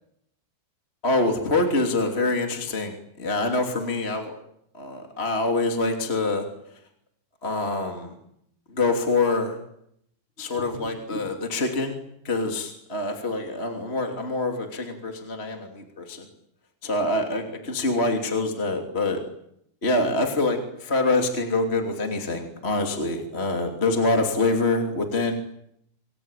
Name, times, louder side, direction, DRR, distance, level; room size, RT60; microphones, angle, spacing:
voice 1, 1.0-4.3 4.7-6.5 7.4-8.1 8.7-9.6 10.4-12.0 12.2-16.3 16.8-19.2 19.8-25.3, left 2 dB, 20° left, 3 dB, 2.2 m, -25 dB
27.0 x 23.5 x 9.1 m, 0.74 s
omnidirectional pair, 5.2 m